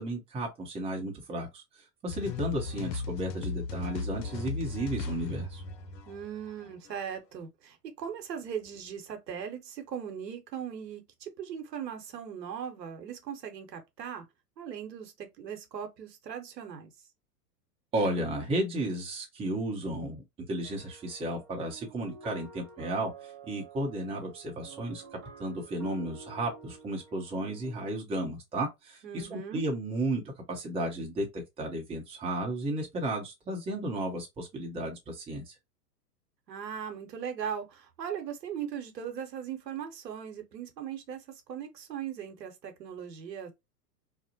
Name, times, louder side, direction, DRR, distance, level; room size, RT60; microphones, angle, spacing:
voice 1, 0.0-1.6 2.0-5.6 17.9-25.0 25.4-30.2 30.5-35.5, right 1 dB, 10° right, 0.6 m, -33 dB
Tibudo Loro, 2.1-7.0, left 3 dB, 90° left, 0.6 m, -36 dB
voice 2, 6.1-14.2 14.6-16.9 29.0-29.6 36.5-43.5, right 8 dB, 85° right, 0.8 m, -39 dB
sound 1, 20.6-27.8, right 5 dB, 35° right, 0.9 m, -50 dB
2.4 x 2.0 x 2.6 m
hypercardioid pair, 105°, 49 cm